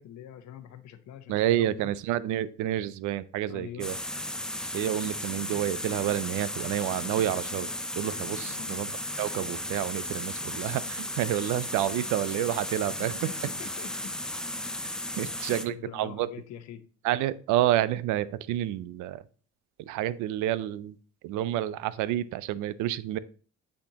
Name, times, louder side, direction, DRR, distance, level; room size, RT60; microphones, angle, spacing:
voice 1, 0.0-1.9 3.5-3.9 8.4-8.8 12.9-14.1 15.2-16.8, left 9 dB, 65° left, 0.8 m, -45 dB
voice 2, 1.3-4.0 4.7-7.7 8.0-8.9 9.2-13.2 15.2-16.3 17.0-19.2 19.9-21.0 21.2-23.2, right 13 dB, 85° right, 0.5 m, -29 dB
sound 1, 3.8-15.7, left 1 dB, ahead, 0.4 m, -35 dB
8.6 x 4.3 x 2.8 m
cardioid pair, 130°, 30 cm